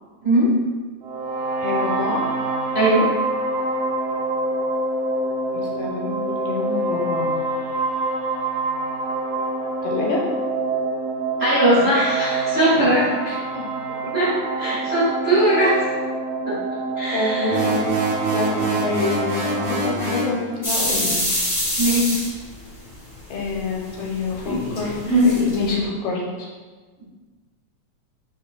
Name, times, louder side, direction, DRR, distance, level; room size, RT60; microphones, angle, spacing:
sound 1, 1.0-19.8, right 2 dB, 80° right, 1.5 m, -26 dB
voice 1, 1.6-2.2 5.5-7.4 9.8-10.2 13.3-13.4 14.0-14.1 15.7-15.8 17.1-17.9 18.3-21.2 23.3-24.4 24.7-26.2, left 3 dB, 80° left, -2 dB, 2.0 m, -27 dB
voice 2, 2.7-3.0 11.4-13.1 14.1-14.3 14.6-15.9 16.4-16.5 17.0-17.6 21.8-22.3, right 1 dB, 30° right, -11 dB, 1.2 m, -19 dB
sound 2, 17.5-20.4, right 3 dB, 65° right, 1.4 m, -25 dB
sound 3, 20.6-23.0 23.4-25.7, left 1 dB, 40° left, 0.9 m, -22 dB
5.4 x 4.4 x 2.2 m, 1.4 s
omnidirectional pair, 3.3 m